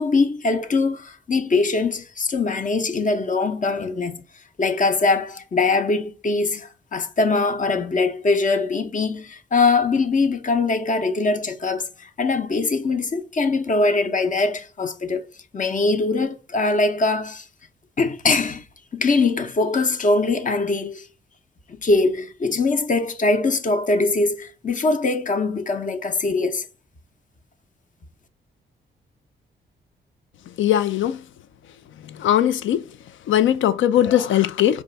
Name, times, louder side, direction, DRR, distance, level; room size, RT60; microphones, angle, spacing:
voice 1, 0.0-4.2 4.6-15.2 15.5-17.5 18.0-18.6 18.9-21.1 21.7-26.7, left 3 dB, 40° left, 0.7 m, -22 dB
voice 2, 30.6-31.2 32.1-32.9 33.3-34.8, left 11 dB, 80° left, 0.4 m, -19 dB
4.5 x 2.3 x 3.9 m
cardioid pair, 80°, 20 cm